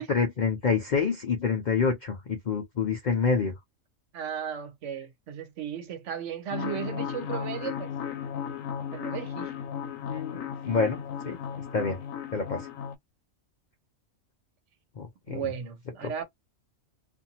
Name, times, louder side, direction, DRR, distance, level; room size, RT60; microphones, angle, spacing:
voice 1, 0.0-3.5 10.1-11.0 11.2-11.4 11.7-12.0 12.3-12.7 15.0-15.5 16.0-16.2, left 5 dB, 55° left, 0.5 m, -27 dB
voice 2, 4.1-7.9 8.9-9.5 15.3-16.2, right 8 dB, 70° right, 1.0 m, -35 dB
sound 1, 6.5-12.9, left 8 dB, 85° left, 1.0 m, -35 dB
2.5 x 2.5 x 2.8 m
omnidirectional pair, 1.4 m